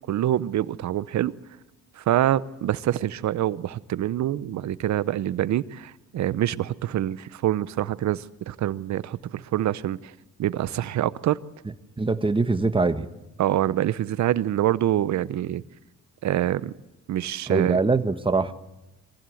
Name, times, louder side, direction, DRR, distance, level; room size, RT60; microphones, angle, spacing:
voice 1, 0.1-1.3 2.0-10.1 10.4-11.4 13.4-15.6 16.2-16.7 17.1-17.8, right 12 dB, 65° right, 17 dB, 0.9 m, -25 dB
voice 2, 12.0-13.1 17.5-18.5, right 3 dB, 15° right, 9 dB, 1.3 m, -23 dB
24.0 x 15.5 x 7.8 m, 1.0 s
cardioid pair, 90°, 30 cm